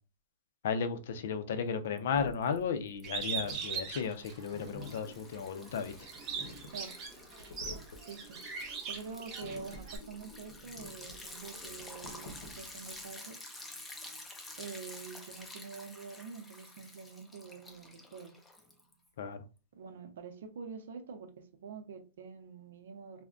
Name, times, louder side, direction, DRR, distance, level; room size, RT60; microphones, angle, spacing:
voice 1, 0.6-5.9 19.2-19.4, left 6 dB, 65° left, 0.5 m, -34 dB
Liquid, 2.0-2.6 2.9-19.1, left 2 dB, 5° left, 0.4 m, -50 dB
sound 1, 2.1-13.1, left 1 dB, 90° left, 0.9 m, -50 dB
Bird, 3.0-5.0 5.5-10.0, right 6 dB, 25° right, 0.7 m, -40 dB
voice 2, 8.9-13.4 14.6-18.3 19.8-21.3 21.6-23.2, right 5 dB, 75° right, 0.7 m, -46 dB
3.4 x 2.1 x 2.5 m
supercardioid pair, 160°, 0 cm